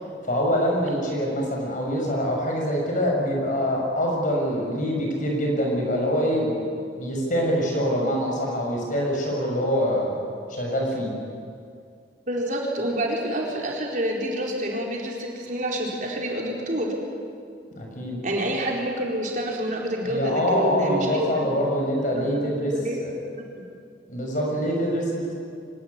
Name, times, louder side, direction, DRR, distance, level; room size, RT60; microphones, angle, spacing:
voice 1, 0.2-6.7 6.9-10.2 10.5-11.1 17.8-18.2 20.0-22.7 23.0-23.1 24.1-25.3, equal, 50° left, 0 dB, 6.5 m, -25 dB
voice 2, 12.3-16.9 18.2-21.5 22.1-23.0 23.3-23.6, right 1 dB, 45° right, -1 dB, 4.4 m, -28 dB
24.5 x 18.0 x 9.9 m, 2.3 s
head